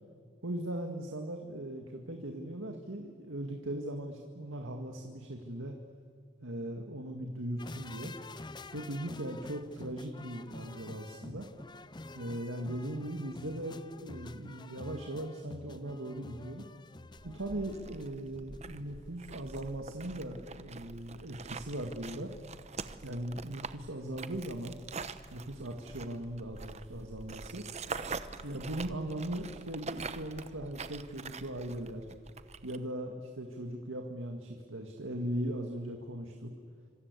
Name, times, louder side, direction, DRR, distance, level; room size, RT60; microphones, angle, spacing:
voice 1, 0.4-5.8 6.4-8.1 8.7-11.5 12.1-16.6 17.2-22.3 23.0-24.8 25.3-27.6 28.4-32.1 32.6-36.5, right 1 dB, 75° right, 3 dB, 2.0 m, -39 dB
sound 1, 7.6-18.8 19.1-19.2, left 2 dB, 20° left, 0.6 m, -49 dB
sound 2, 17.2-32.8, right 4 dB, 30° right, 0.8 m, -45 dB
27.0 x 26.0 x 8.3 m, 2.3 s
head